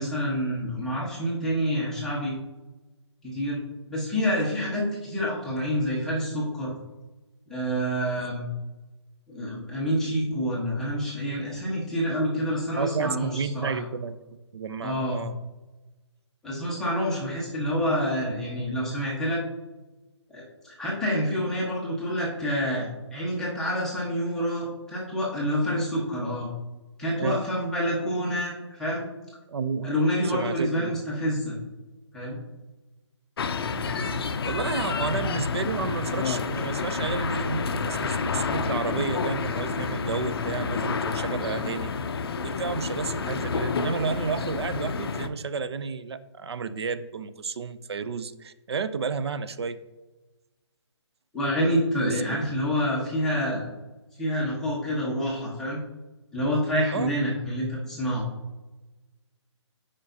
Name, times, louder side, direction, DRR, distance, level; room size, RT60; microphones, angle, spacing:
voice 1, 0.0-2.3 3.2-3.6 3.9-6.7 7.5-8.4 9.3-13.8 14.8-15.2 16.4-19.4 20.3-26.5 27.0-29.0 29.8-31.6 32.1-32.4 34.9-35.2 51.3-53.7 54.2-55.8 56.3-58.3, equal, 5° left, -7 dB, 1.2 m, -27 dB
voice 2, 12.8-14.2 14.5-15.3 27.2-27.4 29.5-29.9 30.2-30.9 34.4-41.9 42.4-49.8 52.1-52.4 56.9-57.1, right 5 dB, 60° right, 12 dB, 0.5 m, -31 dB
sound 1, 33.4-45.3, left 5 dB, 55° left, 0.5 m, -29 dB
8.7 x 5.0 x 2.7 m, 1.1 s
hypercardioid pair, 160°, 15 cm